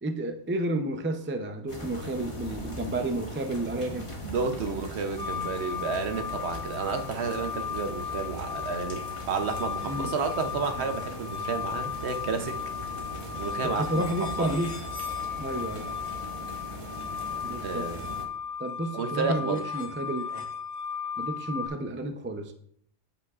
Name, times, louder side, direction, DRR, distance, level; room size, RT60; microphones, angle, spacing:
voice 1, 0.0-4.1 9.9-10.1 13.6-14.7 15.4-15.9 17.4-18.2 18.6-20.4 21.2-22.5, right 1 dB, 15° right, 0.4 m, -31 dB
sound 1, 1.7-18.3, equal, 25° left, 1.3 m, -40 dB
voice 2, 4.2-12.6 13.3-14.6 17.6-18.0 18.9-19.6, right 5 dB, 65° right, 1.0 m, -31 dB
sound 2, 5.2-21.7, left 7 dB, 85° left, 1.6 m, -36 dB
14.0 x 5.7 x 2.4 m
omnidirectional pair, 1.3 m